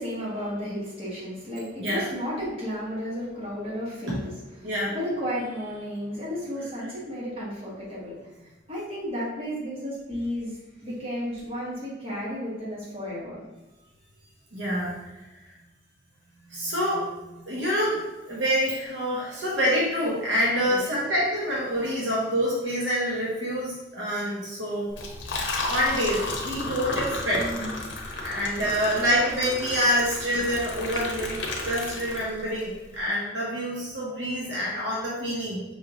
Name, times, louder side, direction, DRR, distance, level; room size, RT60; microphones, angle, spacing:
voice 1, 0.0-4.3 4.6-10.6 10.8-13.4 20.7-20.8 27.3-28.2 28.6-28.8, equal, 30° right, -7 dB, 1.5 m, -33 dB
voice 2, 4.6-4.9 14.5-15.1 16.5-24.9 25.7-27.5 28.2-35.6, equal, 75° right, -5 dB, 1.1 m, -27 dB
Liquid, 24.9-32.6, left 2 dB, 70° left, 0.7 m, -33 dB
5.5 x 3.0 x 2.6 m, 1.1 s
head